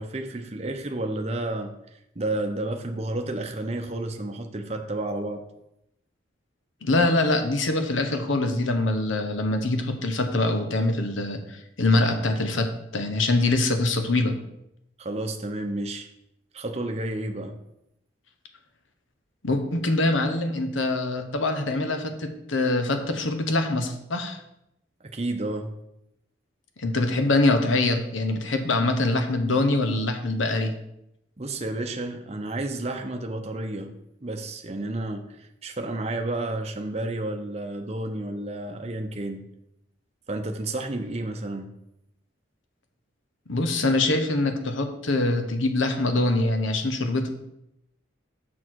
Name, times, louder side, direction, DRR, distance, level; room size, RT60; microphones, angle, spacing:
voice 1, 0.0-1.7 2.2-5.4 15.0-16.1 16.5-17.6 25.0-25.7 31.4-33.9 34.2-39.5 40.3-41.7, right 2 dB, 30° right, 5 dB, 0.7 m, -31 dB
voice 2, 6.8-14.3 19.4-24.4 26.8-30.7 43.5-47.3, left 2 dB, 80° left, 6 dB, 1.0 m, -24 dB
6.4 x 6.1 x 4.6 m, 0.83 s
head